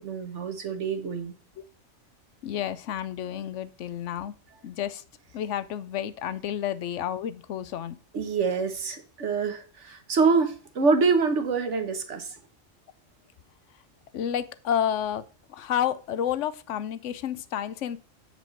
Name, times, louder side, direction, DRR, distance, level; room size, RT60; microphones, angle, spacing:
voice 1, 0.0-1.3 8.1-12.3, right 4 dB, 75° right, 1.5 m, -26 dB
voice 2, 2.4-4.3 4.6-5.0 5.3-8.0 14.1-15.2 15.5-18.0, left 9 dB, 80° left, 1.0 m, -30 dB
7.6 x 4.9 x 5.1 m
omnidirectional pair, 1.3 m